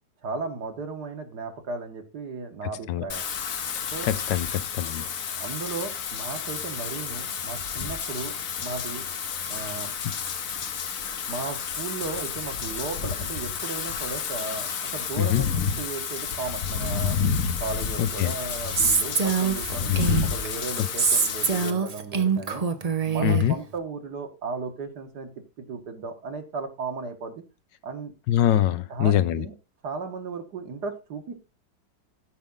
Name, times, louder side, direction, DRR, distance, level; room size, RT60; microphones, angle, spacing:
voice 1, 0.2-3.2 3.9-4.1 5.4-9.0 9.5-9.9 11.3-14.7 14.9-15.5 15.8-17.2 17.6-19.9 20.2-22.6 23.0-25.3 25.6-27.4 27.8-28.1 28.9-29.5 29.8-31.3, right 4 dB, 65° right, 2.1 m, -35 dB
Wind / Rain, 3.1-21.7, left 6 dB, 55° left, 1.2 m, -30 dB
voice 2, 3.8-5.1 15.2-15.4 18.0-18.3 19.9-20.0 23.2-23.5 28.3-29.4, left 12 dB, 75° left, 1.3 m, -24 dB
Female speech woman speaking, 18.8-20.5 21.0-23.5, right 5 dB, 50° right, 0.4 m, -24 dB
15.5 x 5.2 x 3.8 m
omnidirectional pair, 2.0 m